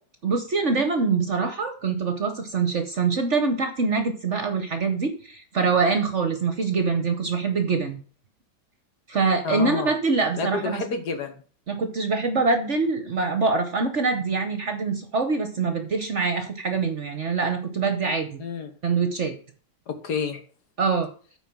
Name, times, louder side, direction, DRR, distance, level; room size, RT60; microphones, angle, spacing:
voice 1, 0.2-8.0 9.1-10.8 11.7-18.4 18.8-19.3 20.8-21.1, right 4 dB, 50° right, 7 dB, 1.0 m, -24 dB
voice 2, 9.4-9.9 10.4-11.4 18.4-18.7 19.9-20.4, left 5 dB, 60° left, 7 dB, 1.6 m, -29 dB
8.9 x 4.7 x 6.0 m, 0.41 s
omnidirectional pair, 2.1 m